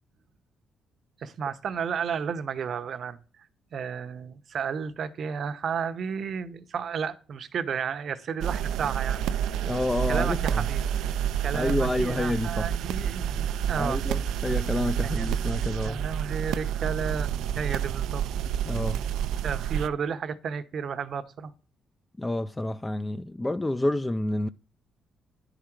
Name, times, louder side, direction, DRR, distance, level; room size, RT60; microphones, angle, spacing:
voice 1, 1.2-3.5 3.7-9.2 10.1-10.8 11.4-14.0 15.0-15.3 15.8-18.3 19.4-21.5, right 6 dB, 55° right, 0.8 m, -32 dB
sound 1, 8.4-19.9, right 9 dB, 85° right, 0.5 m, -29 dB
voice 2, 9.6-10.6 11.5-12.7 13.7-16.0 18.7-19.0 22.2-24.5, left 1 dB, 15° left, 0.4 m, -29 dB
10.5 x 5.0 x 5.9 m
cardioid pair, 90°, 0 cm